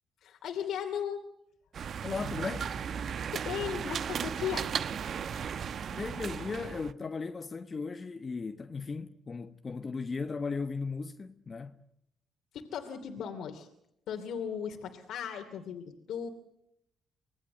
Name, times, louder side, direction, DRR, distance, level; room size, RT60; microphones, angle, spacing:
voice 1, 0.2-1.2 3.3-4.7 12.5-13.7 14.1-16.3, left 8 dB, 80° left, 2.7 m, -36 dB
sound 1, 1.7-6.9, right 7 dB, 60° right, 1.0 m, -36 dB
voice 2, 2.0-2.7 5.9-11.8, left 4 dB, 35° left, 1.3 m, -36 dB
26.0 x 20.0 x 8.0 m
cardioid pair, 90°, 0 cm